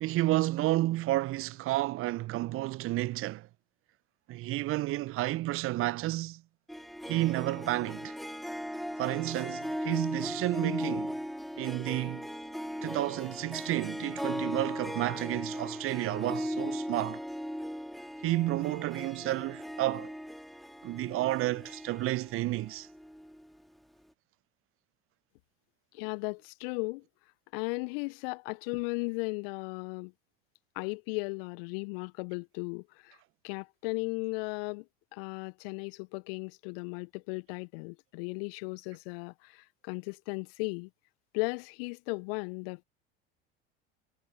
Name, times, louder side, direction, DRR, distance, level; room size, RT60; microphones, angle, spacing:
voice 1, 0.0-3.5 4.3-6.4 7.1-8.1 9.0-11.1 11.6-12.3 12.8-17.2 18.2-20.1 20.8-22.9, right 17 dB, 40° right, 0.7 m, -31 dB
Harp, 6.7-23.5, equal, ahead, 2.6 m, -38 dB
voice 2, 25.9-27.0 27.5-30.1 30.8-33.2 33.4-34.8 35.1-40.9 41.3-42.8, left 30 dB, 55° left, 0.7 m, -36 dB
figure-of-eight pair, 75°, 34 cm